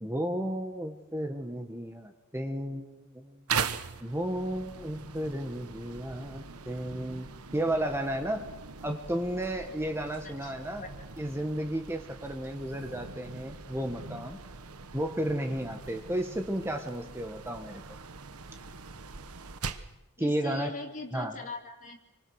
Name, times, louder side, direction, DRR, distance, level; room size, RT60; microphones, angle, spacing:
voice 1, 0.0-3.5 4.0-8.4 8.8-10.8 11.2-14.4 14.9-17.8 20.2-20.7 21.1-21.4, right 1 dB, 10° right, 4 dB, 1.5 m, -33 dB
sound 1, 3.5-20.0, right 6 dB, 85° right, 1.3 m, -41 dB
voice 2, 20.2-22.2, left 2 dB, 35° left, 3 dB, 3.4 m, -40 dB
29.0 x 25.0 x 6.5 m, 0.96 s
head